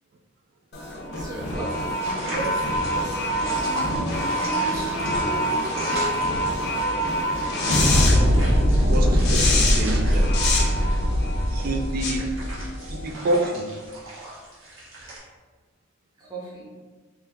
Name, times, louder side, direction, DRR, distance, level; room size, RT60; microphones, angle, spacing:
sound 1, 0.7-13.1, equal, 55° left, 0.5 m, -23 dB
voice 1, 1.1-4.0 4.7-6.2 10.6-10.8 12.0-12.3 16.2-16.7, right 2 dB, 20° right, -6 dB, 0.7 m, -37 dB
sound 2, 1.7-15.2, right 2 dB, 75° right, 0.9 m, -38 dB
sound 3, 3.5-11.0, equal, 30° left, 0.8 m, -35 dB
voice 2, 8.9-10.3 10.6-10.7 11.5-12.3 13.0-13.7, right 1 dB, 50° right, 3 dB, 0.3 m, -27 dB
2.8 x 2.3 x 3.4 m, 1.4 s
head